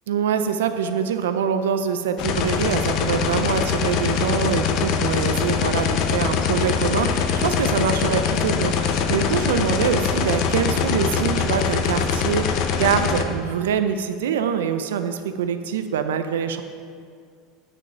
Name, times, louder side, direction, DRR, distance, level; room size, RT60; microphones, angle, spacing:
voice 1, 0.1-16.6, right 7 dB, 85° right, 9 dB, 0.6 m, -24 dB
sound 1, 2.2-13.2, left 6 dB, 60° left, 0.8 m, -23 dB
7.8 x 6.3 x 5.7 m, 2.2 s
hypercardioid pair, 90°, 0 cm